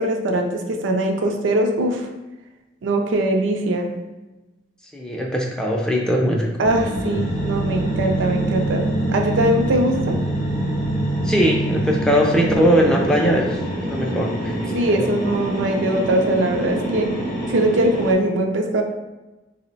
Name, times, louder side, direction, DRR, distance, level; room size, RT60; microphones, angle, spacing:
voice 1, 0.0-2.1 2.8-3.9 6.6-10.2 14.7-17.2 17.5-18.8, right 1 dB, 90° right, 3 dB, 0.4 m, -21 dB
voice 2, 4.9-6.5 11.2-15.1, equal, 5° left, -1 dB, 0.4 m, -20 dB
sound 1, 6.6-18.1, equal, 45° left, 0.6 m, -26 dB
sound 2, 7.2-12.7, right 3 dB, 90° left, 0.4 m, -27 dB
3.6 x 2.1 x 3.9 m, 1.1 s
head